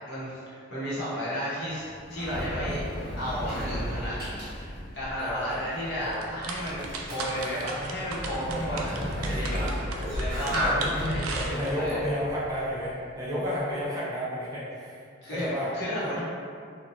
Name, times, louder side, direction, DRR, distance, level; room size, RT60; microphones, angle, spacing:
voice 1, 0.1-2.8 3.2-4.3 4.9-9.7 10.1-10.7 11.0-12.0 15.2-16.2, equal, 55° left, -10 dB, 0.9 m, -33 dB
Sliding door, 1.6-13.1, equal, 45° right, 0.8 m, -34 dB
voice 2, 2.7-3.0 5.2-5.6 6.0-6.2 7.9-8.0 8.5-8.6 9.2-9.7 10.0-10.2 10.6-10.9 11.3-15.0 15.3-15.7 16.0-16.1, equal, 15° right, -8 dB, 0.4 m, -32 dB
sound 1, 6.1-12.0, right 4 dB, 90° right, 0.4 m, -37 dB
2.8 x 2.2 x 2.5 m, 2.3 s
head